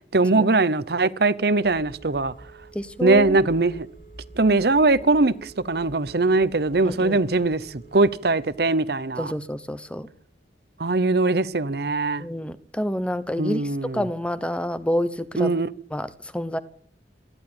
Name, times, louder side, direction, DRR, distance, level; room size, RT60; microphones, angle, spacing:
voice 1, 0.0-2.3 3.0-3.9 4.3-9.3 10.8-12.3 13.4-14.0 15.4-15.7, right 3 dB, 60° right, 0.9 m, -21 dB
Telephone, 1.6-8.6, right 2 dB, 45° left, 7.7 m, -47 dB
voice 2, 2.7-3.4 6.8-7.2 9.2-10.1 12.2-15.6 15.9-16.6, equal, 5° left, 0.8 m, -28 dB
26.5 x 11.0 x 8.9 m
head